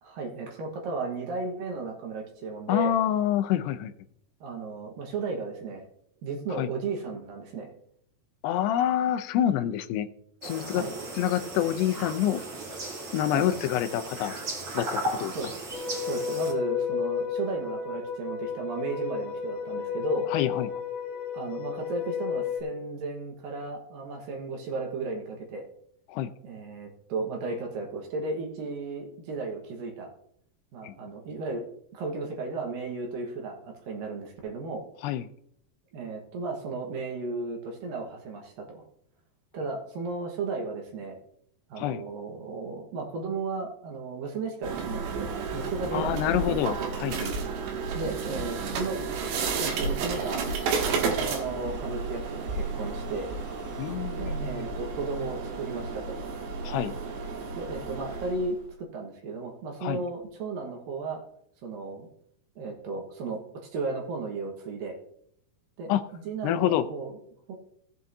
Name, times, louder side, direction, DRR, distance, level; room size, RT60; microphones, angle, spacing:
voice 1, 0.0-3.0 4.4-5.8 6.2-7.7 10.7-10.9 13.3-13.5 15.2-15.5 16.0-20.3 21.3-25.6 26.4-30.1 30.7-31.6 31.9-34.8 35.9-38.8 39.5-41.2 41.7-46.6 47.9-49.1 49.4-50.5 51.0-53.3 54.2-56.2 57.5-61.2 61.6-62.1 62.6-65.0 65.8-67.2 67.5-67.6, right 3 dB, 65° right, 1 dB, 2.8 m, -34 dB
voice 2, 2.7-3.9 6.6-6.7 8.4-10.1 10.4-10.8 11.2-12.4 13.1-14.3 14.7-15.3 20.3-20.7 26.1-26.3 30.8-31.0 35.0-35.3 41.8-42.0 45.9-47.3 53.8-54.7 56.6-57.0 59.8-60.0 65.9-66.0 66.4-66.9, left 11 dB, 85° left, 10 dB, 2.7 m, -27 dB
sound 1, 10.4-16.5, right 2 dB, 40° right, 2.8 m, -36 dB
sound 2, 15.7-22.6, left 7 dB, 60° left, 3.6 m, -32 dB
sound 3, 44.6-58.6, right 4 dB, 85° right, 3.6 m, -32 dB
17.5 x 7.7 x 2.7 m, 0.69 s
omnidirectional pair, 4.8 m